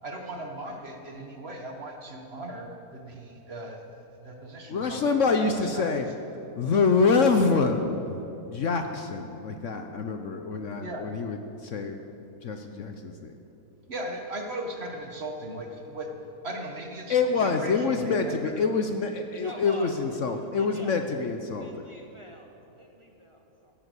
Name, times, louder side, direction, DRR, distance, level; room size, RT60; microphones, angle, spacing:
voice 1, 0.0-5.0 5.4-5.8 10.8-11.0 13.9-16.1 16.4-18.3, right 1 dB, 40° right, 2 dB, 1.6 m, -38 dB
voice 2, 4.7-6.1 6.6-13.4 17.1-21.9, left 4 dB, 60° left, 6 dB, 1.0 m, -26 dB
voice 3, 19.4-20.0 20.6-21.0 21.6-23.7, equal, 20° right, 2 dB, 1.1 m, -45 dB
15.5 x 8.9 x 8.2 m, 2.9 s
omnidirectional pair, 1.7 m